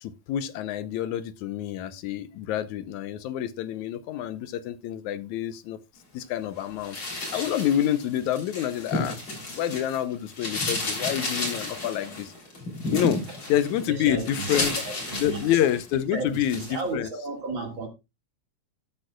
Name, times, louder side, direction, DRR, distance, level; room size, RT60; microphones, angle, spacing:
voice 1, 0.0-5.8 6.1-7.0 7.3-9.2 9.5-12.3 12.9-13.2 13.5-14.8 15.2-17.1, left 11 dB, 85° left, 2.2 m, -27 dB
sound 1, 6.8-10.0 10.3-15.9 16.3-16.8, left 2 dB, 45° left, 4.4 m, -32 dB
voice 2, 13.9-15.6 16.1-17.9, right 3 dB, 45° right, 2.5 m, -34 dB
13.0 x 8.6 x 2.4 m
omnidirectional pair, 3.3 m